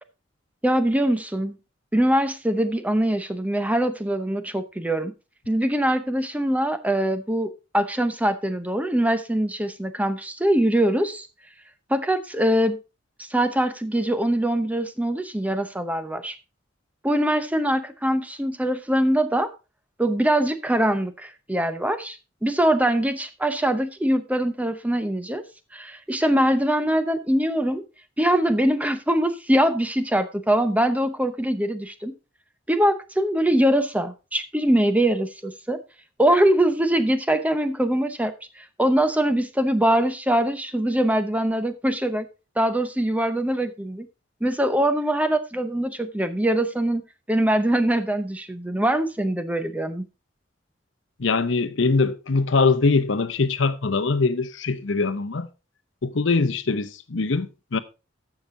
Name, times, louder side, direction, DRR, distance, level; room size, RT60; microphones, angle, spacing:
voice 1, 0.6-1.6 1.9-5.1 5.5-11.3 11.9-12.8 13.2-16.4 17.0-19.5 20.0-25.4 25.7-27.8 28.2-32.1 32.7-35.8 36.2-42.3 42.6-44.1 44.4-47.0 47.3-50.1, right 1 dB, 10° right, 0.8 m, -23 dB
voice 2, 51.2-55.5 56.0-57.8, left 4 dB, 70° left, 0.8 m, -22 dB
14.0 x 5.9 x 3.8 m
head